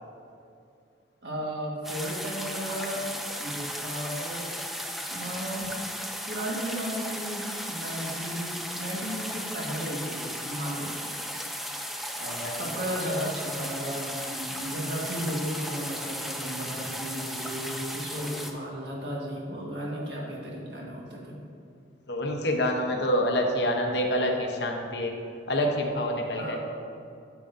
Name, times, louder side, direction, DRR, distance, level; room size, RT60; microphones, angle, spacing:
voice 1, 1.2-3.1 3.4-4.5 5.1-5.7 6.3-10.9 12.2-21.4 26.3-26.6, equal, 60° right, -3 dB, 1.6 m, -34 dB
sound 1, 1.8-18.5, equal, ahead, 0.4 m, -35 dB
voice 2, 22.1-25.1 25.5-26.6, equal, 60° left, 1 dB, 0.9 m, -27 dB
8.8 x 8.1 x 2.6 m, 2.5 s
head